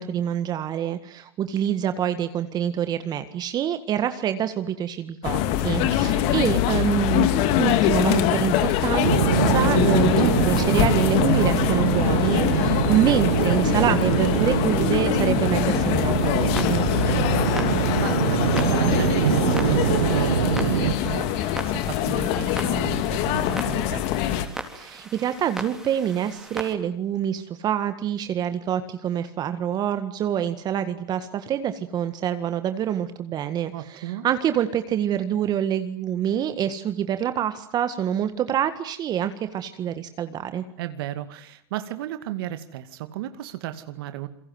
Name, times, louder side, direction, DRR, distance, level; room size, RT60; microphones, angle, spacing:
voice 1, 0.0-7.3 7.6-9.1 9.5-16.8 24.7-40.6, right 10 dB, 30° right, 10 dB, 1.8 m, -26 dB
sound 1, 5.2-24.5, left 11 dB, 50° left, 2.7 m, -23 dB
voice 2, 5.8-6.3 17.1-24.1 33.7-34.3 40.8-44.3, right 13 dB, 65° right, 10 dB, 2.3 m, -34 dB
sound 2, 9.0-20.9, right 10 dB, 85° right, 1.6 m, -24 dB
Clock, 16.2-26.7, right 1 dB, 5° right, 3.9 m, -39 dB
28.5 x 23.0 x 8.0 m, 0.64 s
hypercardioid pair, 125°, 13 cm